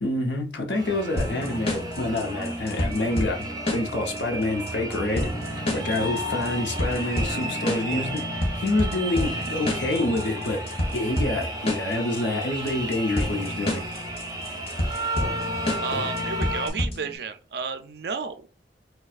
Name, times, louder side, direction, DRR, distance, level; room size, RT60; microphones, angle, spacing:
voice 1, 0.0-3.5 3.7-10.6 10.9-13.8, left 2 dB, 80° left, 0.9 m, -27 dB
sound 1, 0.7-16.7, right 1 dB, 20° right, 0.7 m, -33 dB
sound 2, 1.2-17.2, left 1 dB, 30° left, 0.7 m, -30 dB
sound 3, 2.3-7.7, equal, 10° left, 0.3 m, -41 dB
voice 2, 15.5-18.4, right 5 dB, 60° right, 0.4 m, -32 dB
4.3 x 2.3 x 2.4 m
head